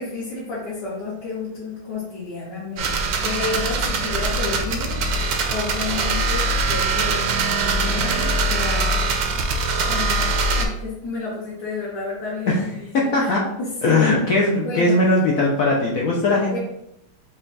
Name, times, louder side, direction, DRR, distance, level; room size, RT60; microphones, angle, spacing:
voice 1, 0.0-5.2 5.5-9.0 9.9-13.3 13.6-14.0 14.6-14.9 16.5-16.6, left 4 dB, 55° left, -7 dB, 1.7 m, -31 dB
sound 1, 2.8-10.7, right 3 dB, 70° right, 1.1 m, -22 dB
voice 2, 12.9-13.4 13.8-16.6, left 2 dB, 75° left, -2 dB, 0.7 m, -19 dB
5.4 x 2.4 x 4.0 m, 0.79 s
omnidirectional pair, 2.3 m